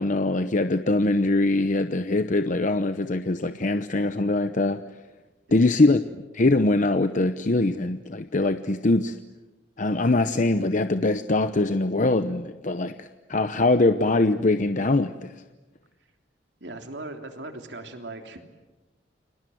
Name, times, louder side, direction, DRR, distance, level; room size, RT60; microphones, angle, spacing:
voice 1, 0.0-4.8 5.5-6.0 6.3-9.2 9.8-15.4, left 2 dB, 45° left, 10 dB, 0.8 m, -22 dB
voice 2, 16.6-18.4, right 2 dB, 70° right, 5 dB, 3.3 m, -38 dB
30.0 x 25.0 x 7.9 m, 1.2 s
head